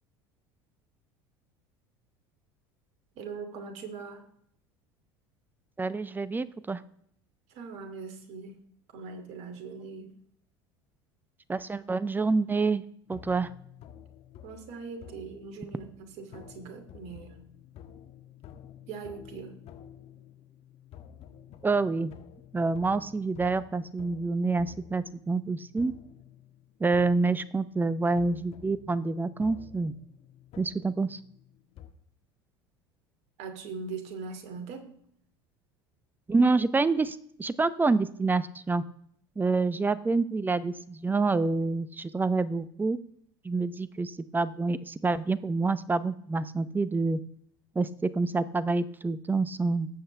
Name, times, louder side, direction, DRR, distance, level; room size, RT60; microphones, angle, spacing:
voice 1, 3.1-4.2 7.5-8.6 8.9-10.1 14.4-17.4 18.9-19.5 33.4-34.9, right 5 dB, 55° right, 5 dB, 2.7 m, -41 dB
voice 2, 5.8-6.8 11.5-12.8 13.1-13.5 21.6-22.1 22.5-25.9 26.8-29.9 30.6-31.2 36.3-38.8 39.4-43.0 43.4-47.2 47.7-49.9, right 3 dB, 15° right, 16 dB, 0.8 m, -27 dB
sound 1, 13.1-31.9, left 9 dB, 50° left, 1.4 m, -51 dB
19.5 x 7.9 x 3.4 m, 0.68 s
hypercardioid pair, 75°, 14 cm